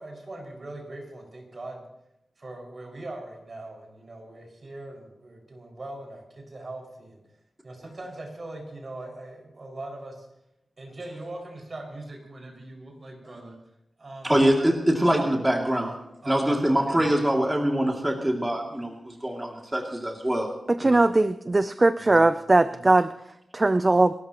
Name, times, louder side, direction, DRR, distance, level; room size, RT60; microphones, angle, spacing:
voice 1, 0.0-1.9 2.4-7.2 7.6-10.3 10.8-13.5 14.0-14.7 16.2-17.0 22.0-22.2 22.7-22.8, right 2 dB, 45° right, 5.6 m, -41 dB
voice 2, 14.2-16.0 16.3-20.5 20.8-21.0, right 1 dB, 10° right, 2.5 m, -24 dB
voice 3, 20.7-23.1 23.5-24.1, right 2 dB, 30° right, 0.5 m, -20 dB
28.5 x 13.5 x 3.0 m
wide cardioid pair, 80°, 0 cm